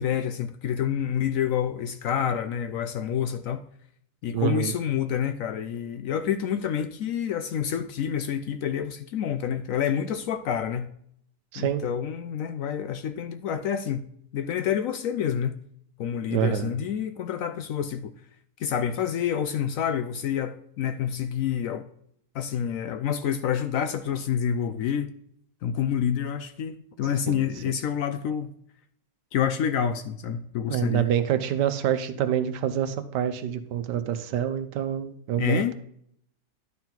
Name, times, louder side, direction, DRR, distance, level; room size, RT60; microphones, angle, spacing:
voice 1, 0.0-3.6 4.2-10.9 11.6-14.1 14.3-15.6 16.0-18.1 18.6-21.9 22.3-25.1 25.6-28.5 29.3-31.1 35.4-35.7, left 8 dB, 70° left, 0.8 m, -28 dB
voice 2, 4.3-4.7 11.5-11.8 16.3-16.7 27.3-27.4 30.7-35.7, right 10 dB, 85° right, 1.4 m, -26 dB
11.0 x 4.5 x 3.8 m
omnidirectional pair, 1.8 m